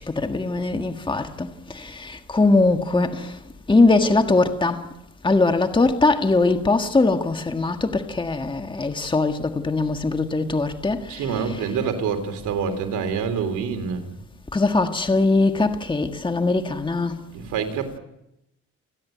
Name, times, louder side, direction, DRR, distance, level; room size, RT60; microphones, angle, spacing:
voice 1, 0.1-1.5 1.7-3.3 3.7-4.8 5.2-11.3 14.5-17.1, left 3 dB, 15° left, 1.6 m, -21 dB
voice 2, 11.1-14.1 17.3-18.0, right 6 dB, 85° right, 3.4 m, -26 dB
29.5 x 10.5 x 9.2 m
cardioid pair, 90°, 30 cm